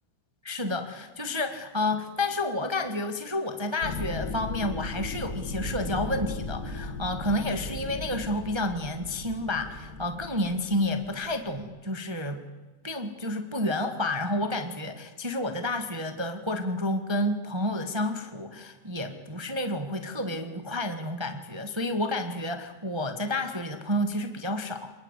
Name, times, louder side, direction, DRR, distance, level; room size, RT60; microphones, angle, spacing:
voice 1, 0.4-12.5 12.8-24.9, left 1 dB, 30° right, 7 dB, 0.4 m, -30 dB
sound 1, 3.8-11.6, left 2 dB, 30° left, 2.0 m, -37 dB
27.5 x 19.5 x 8.3 m, 1.3 s
omnidirectional pair, 3.7 m